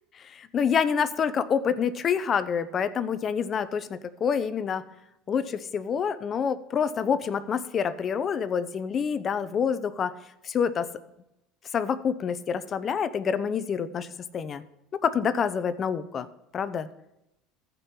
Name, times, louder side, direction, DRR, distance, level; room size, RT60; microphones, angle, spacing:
voice 1, 0.3-4.8 5.3-10.1 10.4-10.9 11.7-14.1 14.3-14.6 14.9-16.3 16.5-16.9, left 7 dB, 35° left, 13 dB, 0.6 m, -27 dB
14.5 x 5.3 x 4.3 m, 0.88 s
supercardioid pair, 100°, 0 cm